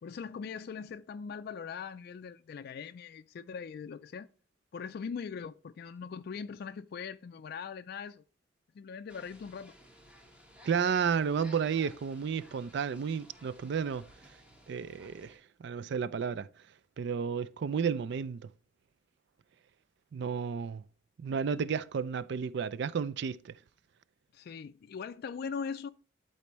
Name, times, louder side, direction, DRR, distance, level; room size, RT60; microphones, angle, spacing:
voice 1, 0.0-4.3 4.7-8.2 8.7-9.7 24.3-25.9, left 6 dB, 55° left, 0.3 m, -41 dB
sound 1, 9.1-15.4, equal, 5° right, 1.4 m, -57 dB
voice 2, 10.6-14.1 14.7-16.5 17.0-18.5 20.1-20.8 21.2-23.5, right 6 dB, 65° right, 0.4 m, -32 dB
12.0 x 4.2 x 3.0 m
head